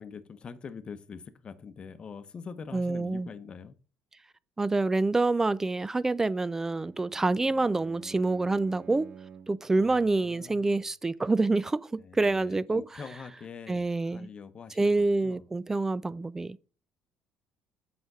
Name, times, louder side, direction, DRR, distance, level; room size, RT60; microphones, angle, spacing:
voice 1, 0.0-3.8 9.8-10.9 12.0-15.4, left 6 dB, 40° left, 0.8 m, -44 dB
voice 2, 2.7-3.3 4.6-9.1 9.5-12.8 13.7-14.3 14.8-16.6, right 3 dB, 15° right, 0.4 m, -27 dB
Bowed string instrument, 6.5-9.7, right 7 dB, 45° right, 0.8 m, -48 dB
7.9 x 5.1 x 4.8 m
supercardioid pair, 80°, 3 cm